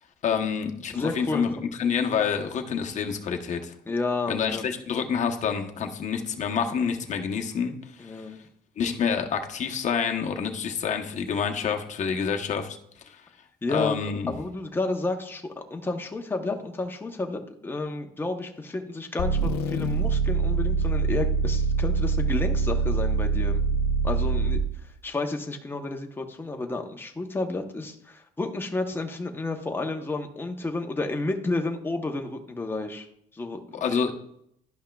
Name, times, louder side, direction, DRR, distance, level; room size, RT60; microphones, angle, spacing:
voice 1, 0.2-1.5 1.8-3.7 4.3-8.3 8.8-12.8 13.1-13.2 13.7-14.3 33.7-34.1, left 6 dB, 45° left, 4 dB, 1.0 m, -28 dB
voice 2, 0.9-1.5 3.9-4.7 8.0-8.4 13.6-14.0 14.3-23.6 24.0-24.6 25.0-33.1 33.3-34.1, left 2 dB, 15° left, 4 dB, 0.9 m, -31 dB
sound 1, 19.2-24.8, right 4 dB, 75° left, 0.6 m, -24 dB
11.5 x 5.5 x 2.3 m, 0.72 s
cardioid pair, 110°, 17 cm